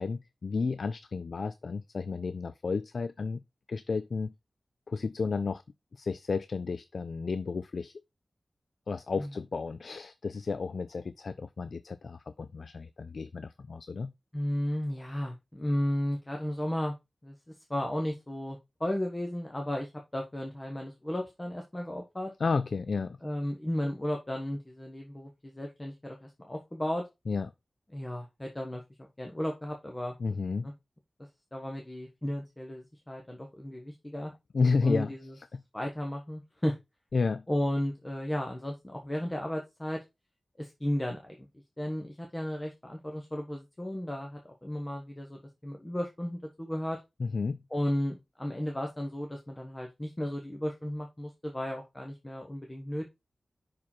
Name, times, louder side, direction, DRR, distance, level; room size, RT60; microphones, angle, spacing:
voice 1, 0.0-3.4 3.7-4.3 4.9-5.6 5.9-7.9 8.9-14.1 22.4-23.2 27.3-27.5 30.2-30.7 34.5-35.6 37.1-37.4 47.2-47.6, left 4 dB, 75° left, 0.3 m, -32 dB
voice 2, 14.3-16.9 17.2-22.3 23.2-27.1 27.9-30.1 30.6-30.7 31.2-34.3 34.8-35.3 35.7-36.8 37.5-40.0 40.6-41.5 41.8-47.0 47.7-53.1, left 1 dB, 20° left, 1.1 m, -34 dB
5.7 x 4.7 x 4.3 m
wide cardioid pair, 105°, 0 cm